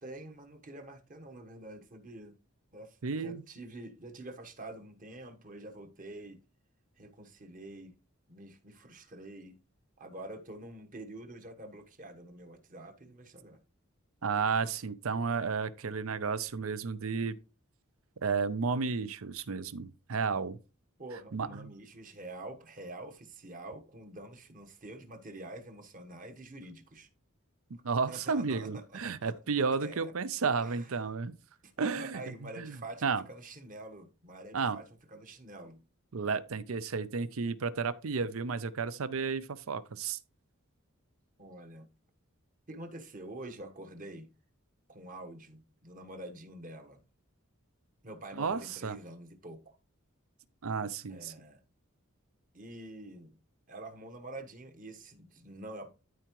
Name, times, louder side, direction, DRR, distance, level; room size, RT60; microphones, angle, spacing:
voice 1, 0.0-2.4 2.7-6.4 7.0-7.9 8.3-9.6 10.0-13.6 21.0-27.1 28.0-29.3 29.8-30.1 30.6-30.9 31.6-35.8 41.4-41.9 42.7-44.3 44.9-47.0 48.0-49.8 51.1-51.6 52.5-53.4 53.7-55.9, right 1 dB, 40° right, 1.2 m, -47 dB
voice 2, 3.0-3.4 14.2-17.4 18.2-20.6 21.3-21.7 27.8-31.3 31.8-32.8 33.0-33.2 34.5-34.8 36.1-40.2 48.4-49.0 50.6-51.3, right 5 dB, 75° right, 0.6 m, -32 dB
13.0 x 4.6 x 3.0 m
head